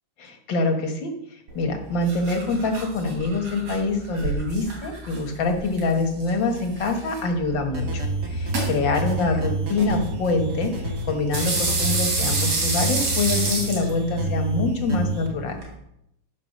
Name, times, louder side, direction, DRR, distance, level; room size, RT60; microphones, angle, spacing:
voice 1, 0.2-1.1 1.5-8.0 8.3-15.6, left 3 dB, 50° left, 4 dB, 1.6 m, -25 dB
sound 1, 1.5-15.7, right 2 dB, 60° right, 4.0 m, -31 dB
sound 2, 7.7-15.3, right 2 dB, 40° right, 2.1 m, -28 dB
12.0 x 5.4 x 6.5 m, 0.78 s
omnidirectional pair, 3.5 m